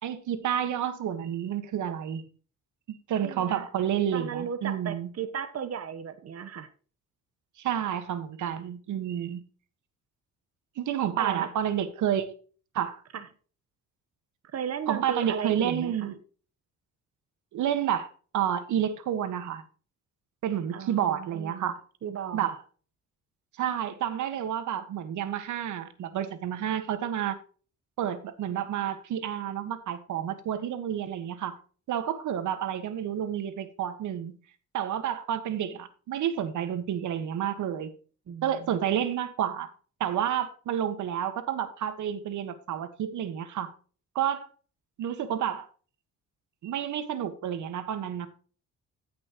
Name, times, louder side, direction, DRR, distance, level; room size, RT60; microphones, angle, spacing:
voice 1, 0.0-2.3 2.9-5.1 7.6-9.4 10.8-12.4 12.7-13.0 14.9-16.2 17.5-19.6 20.4-21.8 22.3-22.6 23.6-27.4 28.0-31.6 31.9-34.4 34.7-37.9 38.4-39.7 40.0-43.7 44.1-44.5 45.0-45.7 46.6-48.3, right 9 dB, 75° right, 1.6 m, -30 dB
voice 2, 3.2-3.7 4.1-6.7 11.2-11.5 13.1-13.3 14.5-16.1 20.7-21.7 22.0-22.5 38.3-38.9, right 8 dB, 55° right, 1.1 m, -35 dB
15.0 x 6.1 x 3.0 m
cardioid pair, 90°, 30 cm